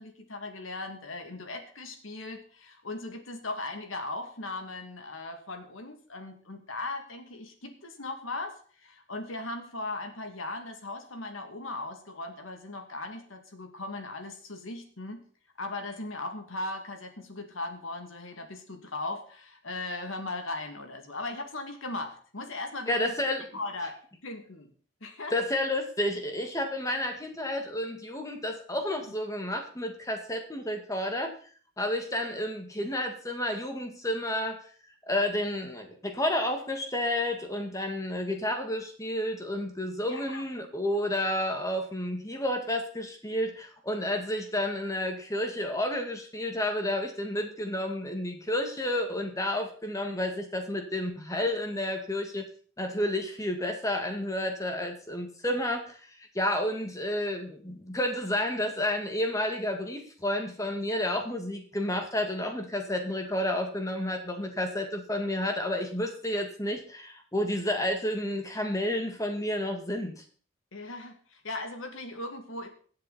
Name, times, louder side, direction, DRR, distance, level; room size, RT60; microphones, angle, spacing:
voice 1, 0.0-15.3 15.6-23.1 23.5-24.7 25.0-25.3 40.1-40.4 70.7-72.7, left 2 dB, 85° left, 5 dB, 2.6 m, -38 dB
voice 2, 22.9-23.4 25.3-31.3 31.8-34.6 35.1-52.5 52.8-56.0 56.3-70.2, left 1 dB, 15° left, 4 dB, 2.0 m, -31 dB
21.0 x 7.8 x 4.3 m, 0.43 s
head